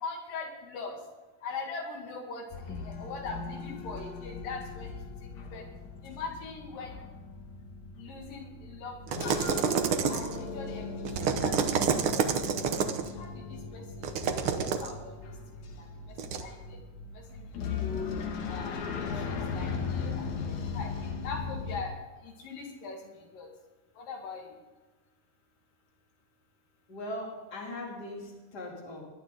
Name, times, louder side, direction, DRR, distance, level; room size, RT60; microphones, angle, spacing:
voice 1, 0.0-1.0 1.4-5.0 5.4-5.6 6.0-6.9 8.0-9.4 10.1-11.9 12.2-12.3 13.2-14.1 14.6-15.2 16.4-16.8 17.3-18.1 18.5-20.9 21.2-21.9 22.2-23.0 23.3-23.5 24.0-24.5, left 4 dB, 85° left, 1 dB, 3.8 m, -41 dB
sound 1, 2.5-21.8, left 5 dB, 65° left, 2.6 m, -38 dB
sound 2, 9.1-10.4 11.1-13.1 14.0-14.9 16.2-16.4, right 6 dB, 75° right, 1.2 m, -28 dB
voice 2, 26.9-29.0, left 1 dB, 30° left, -3 dB, 3.4 m, -39 dB
20.0 x 11.5 x 3.9 m, 1.2 s
omnidirectional pair, 3.8 m